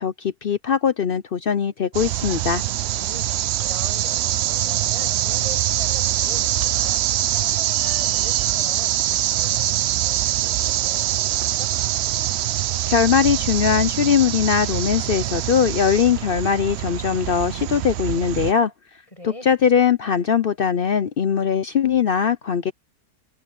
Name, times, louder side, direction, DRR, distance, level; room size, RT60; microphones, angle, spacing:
voice 1, 0.0-2.6 12.9-18.7 19.2-22.7, left 7 dB, 60° left, 0.6 m, -20 dB
sound 1, 1.9-18.5, right 13 dB, 90° right, 0.5 m, -24 dB
voice 2, 2.9-11.7 19.1-19.5, left 1 dB, 20° left, 7.6 m, -41 dB
omnidirectional pair, 1.7 m